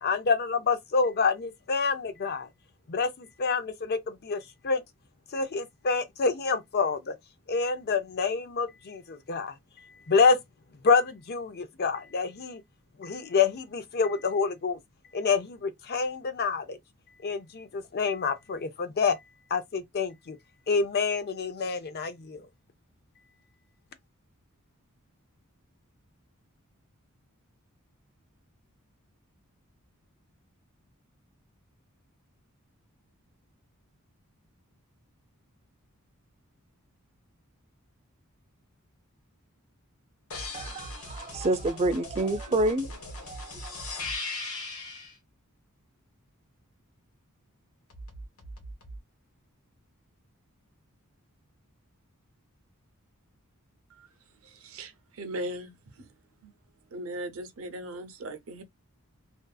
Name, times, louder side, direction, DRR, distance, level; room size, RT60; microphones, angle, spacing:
voice 1, 0.0-2.5 2.9-4.8 5.3-7.1 7.5-10.4 10.8-12.6 13.0-14.8 15.1-16.8 17.2-19.2 19.5-20.4 20.7-22.5, left 5 dB, 45° left, 0.5 m, -27 dB
sound 1, 40.3-45.1 47.9-49.0, left 2 dB, 80° left, 1.2 m, -39 dB
voice 2, 40.5-42.9 43.3-43.8, right 1 dB, 30° right, 0.4 m, -28 dB
voice 3, 54.4-56.1 56.4-56.5 56.9-58.6, right 1 dB, 70° right, 0.7 m, -38 dB
2.6 x 2.4 x 2.2 m
head